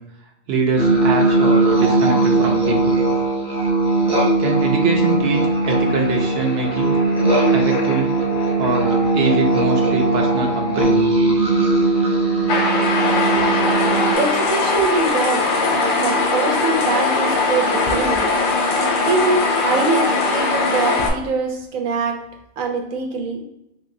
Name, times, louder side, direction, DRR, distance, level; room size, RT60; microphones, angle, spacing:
voice 1, 0.5-3.0 4.4-7.0 7.5-8.2 8.6-11.1, right 4 dB, 60° right, 1 dB, 0.7 m, -23 dB
sound 1, 0.8-14.1, right 2 dB, 5° right, 0.6 m, -19 dB
sound 2, 5.2-10.8, equal, 70° left, 0.9 m, -30 dB
sound 3, 12.5-21.1, left 3 dB, 55° left, 0.6 m, -20 dB
voice 2, 14.1-18.3 19.0-22.2 22.6-23.4, right 4 dB, 75° right, 3 dB, 1.0 m, -23 dB
3.6 x 2.9 x 2.6 m, 0.86 s
omnidirectional pair, 1.4 m